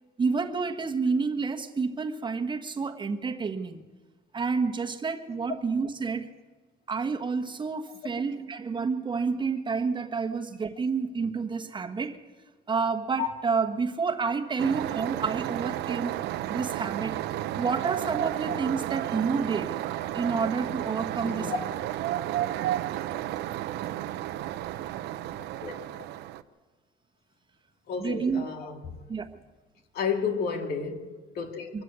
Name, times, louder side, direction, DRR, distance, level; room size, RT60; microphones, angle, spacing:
voice 1, 0.2-3.9 4.3-6.3 6.9-12.2 12.7-16.1 16.5-17.2 17.6-19.8 20.1-21.5 28.0-28.4 29.1-29.4 31.7-31.8, right 5 dB, 30° right, 1.4 m, -29 dB
traffic medina marrakesh, 14.6-26.4, right 13 dB, 85° right, 0.9 m, -32 dB
voice 2, 21.2-21.6 25.6-26.0 27.9-29.0 29.9-31.8, left 6 dB, 65° left, 2.7 m, -32 dB
24.0 x 13.0 x 8.3 m
cardioid pair, 110°, 17 cm